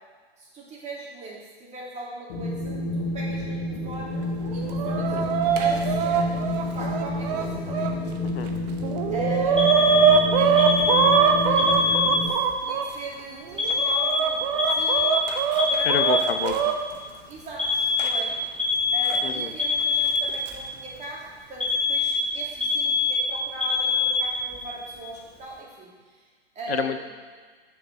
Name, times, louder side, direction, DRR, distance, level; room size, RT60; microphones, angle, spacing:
voice 1, 0.4-6.3 6.6-7.9 9.1-9.7 10.2-15.2 15.6-15.9 17.1-18.3 18.9-26.2 26.5-27.1, right 2 dB, 20° right, -4 dB, 2.4 m, -39 dB
Wind, 2.3-12.3, left 2 dB, 50° left, 1.3 m, -29 dB
Chicken rooster, 4.4-7.9 8.5-8.6 8.8-12.9 13.5-16.7 18.0-18.1 19.1-19.2 20.2-20.5, right 7 dB, 40° right, 0.9 m, -23 dB
Alarm, 9.6-12.5 13.6-16.5 17.6-20.6 21.6-24.6, left 4 dB, 5° left, 1.2 m, -24 dB
voice 2, 15.8-16.7 19.2-19.5 26.7-27.1, left 8 dB, 70° left, 9 dB, 0.8 m, -29 dB
7.4 x 6.6 x 5.5 m, 1.5 s
hypercardioid pair, 120°, 32 cm